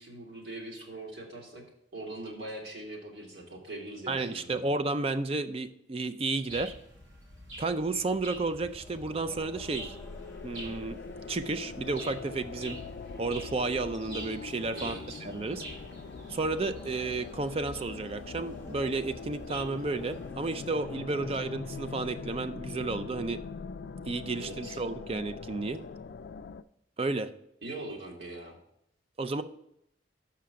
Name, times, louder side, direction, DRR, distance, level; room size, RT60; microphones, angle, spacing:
voice 1, 0.0-1.6 1.9-4.6 14.7-15.2 24.3-24.8 27.6-28.6, right 2 dB, 60° right, -2 dB, 2.2 m, -42 dB
voice 2, 4.1-6.7 7.6-9.9 10.4-11.0 11.3-12.8 13.2-15.0 15.2-15.6 16.3-23.4 24.0-25.8 27.0-27.3 29.2-29.4, right 3 dB, 30° right, 12 dB, 0.4 m, -32 dB
sound 1, 6.4-22.5, left 1 dB, 10° left, 0.6 m, -53 dB
sound 2, 6.5-20.3, right 1 dB, 85° right, 2.1 m, -47 dB
sound 3, 8.7-26.6, left 5 dB, 55° left, 0.3 m, -43 dB
6.2 x 5.7 x 5.8 m, 0.76 s
head